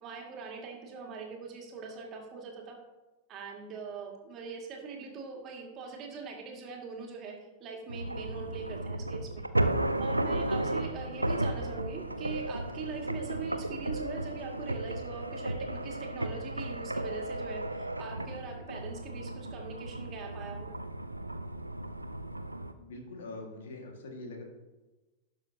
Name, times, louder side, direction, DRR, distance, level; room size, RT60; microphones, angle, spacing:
voice 1, 0.0-2.8 3.3-7.3 7.6-9.4 10.0-20.7, right 5 dB, 35° right, 0 dB, 2.3 m, -42 dB
sound 1, 7.9-22.7, right 1 dB, 85° right, 0.5 m, -34 dB
voice 2, 22.8-24.4, left 2 dB, 60° left, 2 dB, 2.0 m, -43 dB
18.5 x 6.2 x 2.9 m, 1.1 s
figure-of-eight pair, 90°, 0 cm